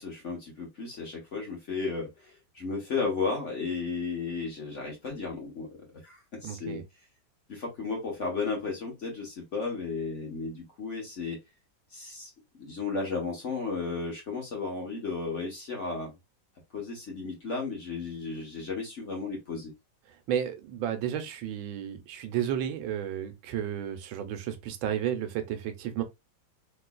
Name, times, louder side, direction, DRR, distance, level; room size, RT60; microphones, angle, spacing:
voice 1, 0.0-5.7 6.0-6.8 7.5-11.4 11.9-12.3 12.6-16.1 16.7-19.7, left 4 dB, 45° left, 1.1 m, -34 dB
voice 2, 6.4-6.8 20.3-26.0, right 10 dB, 85° right, 1.4 m, -32 dB
3.2 x 3.0 x 2.2 m
omnidirectional pair, 2.1 m